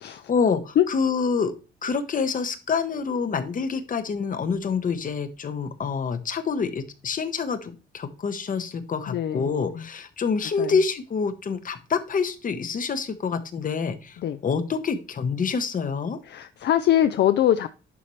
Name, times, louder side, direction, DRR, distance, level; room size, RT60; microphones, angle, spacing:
voice 1, 0.1-1.5 1.8-16.2, left 5 dB, 45° left, 11 dB, 1.0 m, -27 dB
voice 2, 9.1-9.5 10.6-10.7 14.2-14.4 16.3-17.7, left 11 dB, 60° left, 11 dB, 0.5 m, -22 dB
11.0 x 4.2 x 3.1 m, 0.33 s
cardioid pair, 90°, 20 cm